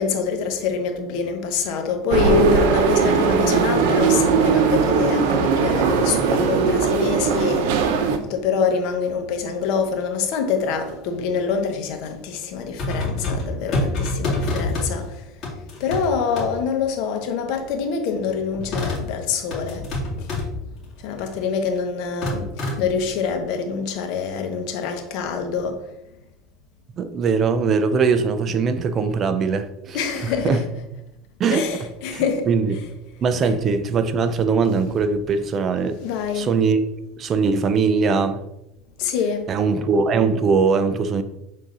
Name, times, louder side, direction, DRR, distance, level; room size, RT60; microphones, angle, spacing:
voice 1, 0.0-7.7 8.3-15.1 15.8-19.8 21.0-22.5 22.8-25.8 29.9-30.6 31.5-32.5 36.0-36.5 39.0-39.5, left 6 dB, 65° left, 1.1 m, -25 dB
sound 1, 2.1-8.2, right 5 dB, 75° right, 0.7 m, -19 dB
sound 2, 12.8-14.9 15.4-16.1 16.4-16.5 18.5-19.0 19.5-20.5 21.1-21.4 22.2-22.8, left 2 dB, 40° left, 2.1 m, -26 dB
voice 2, 27.0-30.6 31.4-32.8 33.2-36.0 36.3-36.8 37.2-38.4 39.5-41.2, right 5 dB, 35° right, 0.5 m, -21 dB
6.4 x 3.8 x 3.9 m
supercardioid pair, 125°, 0 cm